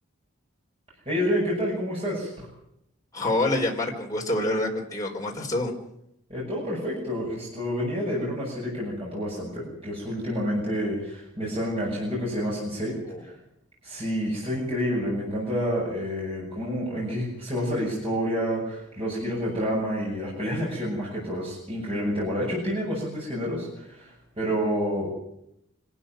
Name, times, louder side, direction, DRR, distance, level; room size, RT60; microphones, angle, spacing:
voice 1, 1.1-2.5 6.3-12.9 13.2-13.3 13.8-25.1, equal, 25° right, -4 dB, 7.2 m, -29 dB
voice 2, 3.1-5.7 13.0-13.2, left 2 dB, 15° left, -1 dB, 4.1 m, -27 dB
25.5 x 13.0 x 9.2 m, 0.80 s
head